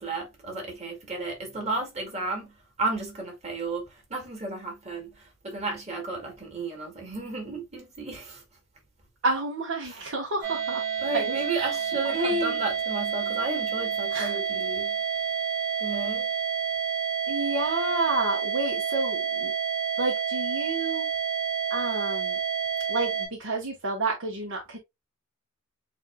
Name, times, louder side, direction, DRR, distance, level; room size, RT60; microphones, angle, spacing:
voice 1, 0.0-8.4 9.9-10.1 11.0-15.0 15.8-16.3, right 3 dB, 35° right, 2.0 m, -33 dB
voice 2, 9.2-10.8 11.1-11.7 12.0-12.6 14.1-14.3 17.3-19.5 20.0-21.0 21.7-22.4 22.9-24.8, right 2 dB, 85° right, 1.2 m, -30 dB
sound 1, 10.4-23.3, right 7 dB, 50° right, 3.5 m, -29 dB
8.1 x 2.7 x 2.2 m
head